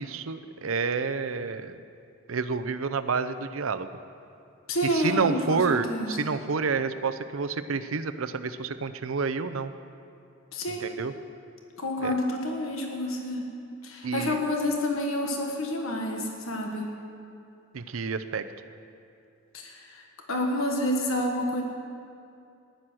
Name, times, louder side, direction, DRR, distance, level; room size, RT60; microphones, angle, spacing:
voice 1, 0.0-1.8 2.3-3.9 4.9-9.7 10.7-11.1 12.0-12.1 14.0-14.4 17.7-18.4, right 5 dB, 80° right, 11 dB, 0.6 m, -29 dB
voice 2, 4.7-6.3 10.5-10.9 11.8-13.5 13.8-16.9 19.5-21.6, left 1 dB, 85° left, 1 dB, 1.5 m, -29 dB
14.0 x 10.5 x 6.2 m, 2.5 s
head